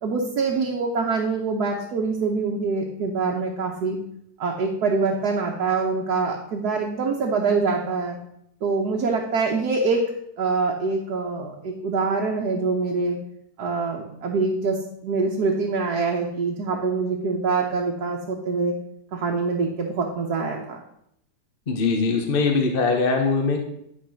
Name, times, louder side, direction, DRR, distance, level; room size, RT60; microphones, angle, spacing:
voice 1, 0.0-4.0 4.4-8.2 8.6-13.2 13.6-18.7 19.1-20.8, right 4 dB, 65° right, 0 dB, 1.6 m, -25 dB
voice 2, 21.7-23.6, left 4 dB, 35° left, 3 dB, 1.1 m, -21 dB
11.0 x 4.4 x 6.3 m, 0.76 s
omnidirectional pair, 1.8 m